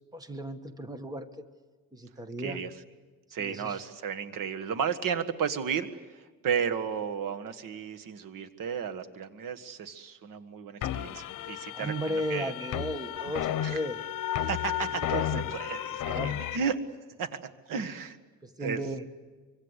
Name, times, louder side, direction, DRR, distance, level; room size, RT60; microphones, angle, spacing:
voice 1, 0.1-1.4 1.9-2.6 3.4-3.8 11.7-14.0 14.9-15.4 16.0-16.5 18.4-19.0, equal, 10° right, 9 dB, 1.4 m, -35 dB
voice 2, 2.4-2.7 3.3-12.5 13.6-13.8 14.4-16.8 17.2-17.4 17.7-18.2 18.6-18.8, right 7 dB, 80° right, 9 dB, 1.7 m, -33 dB
sound 1, 10.8-16.6, left 11 dB, 75° left, 0.9 m, -33 dB
25.0 x 24.5 x 8.2 m, 1.4 s
cardioid pair, 165°, 32 cm